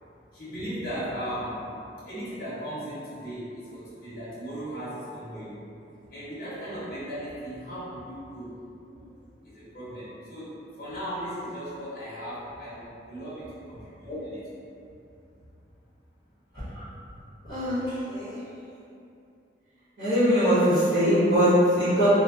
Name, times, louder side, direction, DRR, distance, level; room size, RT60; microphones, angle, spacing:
voice 1, 0.3-1.7 2.0-5.6 6.1-8.6 9.4-14.4, equal, 50° left, -11 dB, 0.7 m, -37 dB
voice 2, 17.4-18.4 20.0-22.1, equal, 65° right, -19 dB, 1.3 m, -22 dB
3.1 x 2.0 x 2.5 m, 2.6 s
head